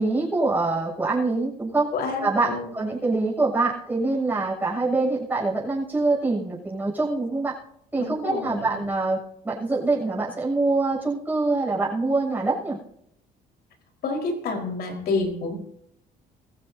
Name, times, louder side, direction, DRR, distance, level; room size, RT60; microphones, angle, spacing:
voice 1, 0.0-1.9 2.2-7.5 7.9-12.8, right 3 dB, 10° right, -5 dB, 7.1 m, -24 dB
voice 2, 1.9-2.7 8.0-8.8 14.0-15.5, left 3 dB, 65° left, 2 dB, 4.7 m, -28 dB
22.0 x 15.0 x 2.8 m, 0.76 s
cardioid pair, 110°, 17 cm